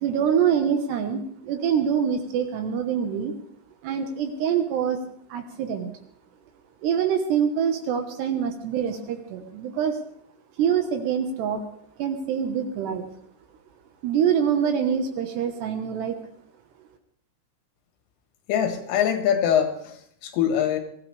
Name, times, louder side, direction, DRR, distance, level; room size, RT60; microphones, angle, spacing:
voice 1, 0.0-3.3 3.8-5.0 5.3-5.9 6.8-10.0 10.6-11.6 12.0-13.1 14.0-16.2, right 8 dB, 70° right, 5 dB, 3.0 m, -25 dB
voice 2, 18.5-20.8, left 9 dB, 85° left, 5 dB, 4.2 m, -23 dB
22.5 x 15.0 x 3.4 m, 0.67 s
omnidirectional pair, 5.6 m